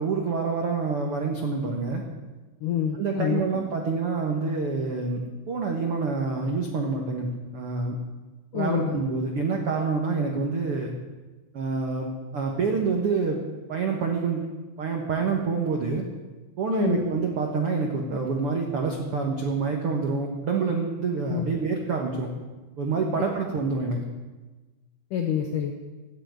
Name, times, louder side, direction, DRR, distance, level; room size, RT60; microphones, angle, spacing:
voice 1, 0.0-2.0 2.9-8.0 8.5-10.9 11.5-13.4 13.7-14.4 14.8-16.0 16.6-22.3 22.8-24.0, right 4 dB, 70° right, 2 dB, 1.3 m, -27 dB
voice 2, 2.6-3.4 8.5-9.0 16.7-17.0 21.3-21.4 23.2-23.3 25.1-25.7, left 9 dB, 70° left, 4 dB, 2.1 m, -26 dB
13.0 x 9.8 x 9.3 m, 1.2 s
omnidirectional pair, 4.7 m